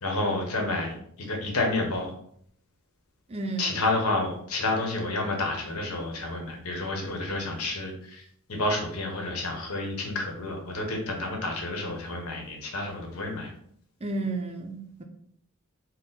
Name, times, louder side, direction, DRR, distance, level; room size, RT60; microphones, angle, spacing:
voice 1, 0.0-2.1 3.6-8.2 8.5-13.5, left 2 dB, 80° left, 1 dB, 1.0 m, -30 dB
voice 2, 3.3-3.9 14.0-15.0, right 3 dB, 25° right, 4 dB, 0.4 m, -32 dB
4.2 x 2.1 x 4.0 m, 0.67 s
head